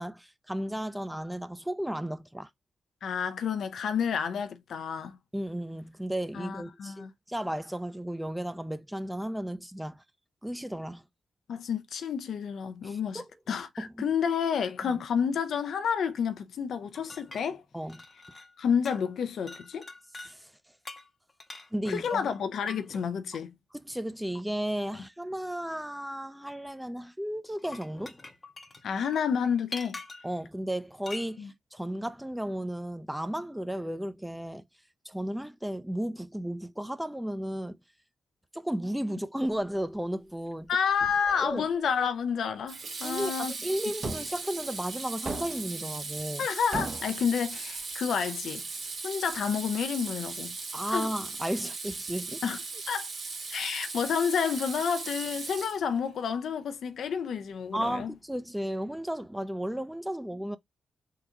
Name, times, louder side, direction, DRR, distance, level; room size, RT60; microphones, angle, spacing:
voice 1, 0.0-2.5 5.3-10.0 10.4-11.0 12.8-13.3 13.8-13.9 14.8-14.9 17.7-18.0 20.3-20.5 21.7-22.3 23.7-28.2 30.2-34.6 35.1-37.8 38.5-40.7 41.4-41.7 43.0-46.5 50.7-52.4 57.7-60.6, equal, 5° right, 0.5 m, -34 dB
voice 2, 3.0-5.2 6.3-7.1 11.5-17.6 18.6-19.9 21.9-23.5 28.8-30.0 31.4-31.5 40.7-43.5 46.4-48.7 49.0-50.6 50.9-51.1 52.4-52.6 52.9-53.1 53.5-58.1, left 7 dB, 75° left, 0.4 m, -30 dB
sound 1, 17.0-18.6 18.9-19.2 19.5-20.3 20.9-23.1 24.4-24.5 27.4-30.4 31.1-31.3, left 3 dB, 40° left, 0.7 m, -45 dB
Water tap faucet / Sink (filling or washing), 41.0-41.4 42.7-56.1, right 4 dB, 65° right, 1.2 m, -38 dB
sound 2, 44.0-44.3 45.3-45.8 46.7-47.2, right 2 dB, 45° right, 0.9 m, -35 dB
3.7 x 2.2 x 2.8 m
supercardioid pair, 50°, 0 cm